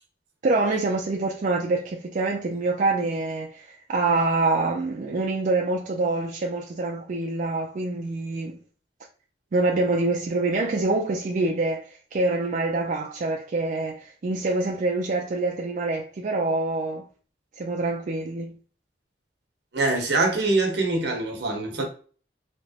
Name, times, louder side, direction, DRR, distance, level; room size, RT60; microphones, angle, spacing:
voice 1, 0.4-8.6 9.5-17.1 17.6-18.6, right 2 dB, 45° right, 0.4 m, -26 dB
voice 2, 19.7-21.8, right 2 dB, 75° right, 1.0 m, -24 dB
3.2 x 2.8 x 2.8 m
head